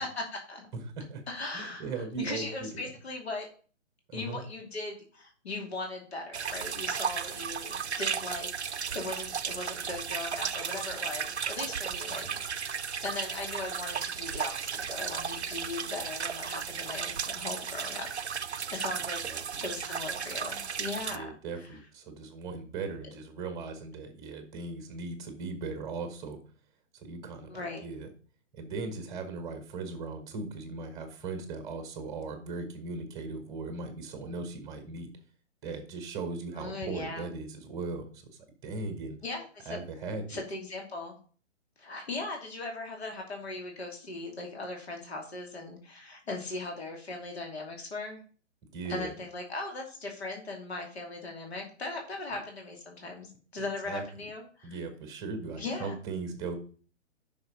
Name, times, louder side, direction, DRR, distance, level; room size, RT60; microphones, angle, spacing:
voice 1, 0.0-0.7 1.3-3.5 4.1-12.7 13.0-21.3 21.5-21.8 27.5-27.8 36.6-37.3 39.2-39.8 40.3-41.1 41.8-48.2 48.9-54.8 55.6-55.9, left 2 dB, 55° left, 2 dB, 2.6 m, -39 dB
voice 2, 0.7-1.2 1.5-2.5 4.1-4.4 12.2-12.4 19.2-19.4 21.1-26.4 26.9-28.1 28.5-35.1 35.6-38.3 38.6-39.2 39.6-40.4 48.7-49.1 53.9-54.0 54.6-56.6, right 4 dB, 10° right, 7 dB, 1.2 m, -38 dB
sound 1, 6.3-21.2, right 7 dB, 65° right, 0.7 m, -35 dB
9.5 x 5.9 x 4.0 m, 0.40 s
figure-of-eight pair, 130°, 37 cm